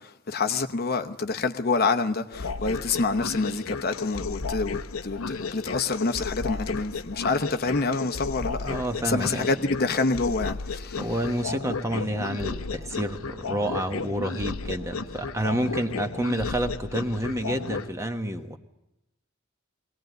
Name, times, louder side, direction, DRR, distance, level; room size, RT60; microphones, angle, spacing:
voice 1, 0.0-8.8 9.0-11.1, left 3 dB, 50° left, 0.9 m, -27 dB
sound 1, 2.3-17.9, left 4 dB, 90° left, 0.9 m, -34 dB
voice 2, 8.6-9.5 11.0-18.6, right 1 dB, 15° right, 1.3 m, -29 dB
22.5 x 18.0 x 9.2 m
head